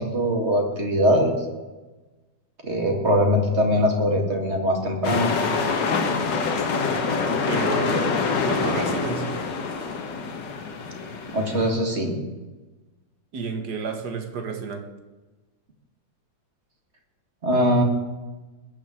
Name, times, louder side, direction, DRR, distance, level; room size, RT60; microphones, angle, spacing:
voice 1, 0.0-1.4 2.6-5.3 11.3-12.1 17.4-17.8, equal, 35° right, 2 dB, 2.3 m, -21 dB
sound 1, 5.0-11.7, left 4 dB, 70° left, 2.0 m, -25 dB
voice 2, 7.5-9.3 13.3-14.9, right 5 dB, 65° right, 6 dB, 2.0 m, -31 dB
20.5 x 7.0 x 7.6 m, 1.2 s
omnidirectional pair, 2.0 m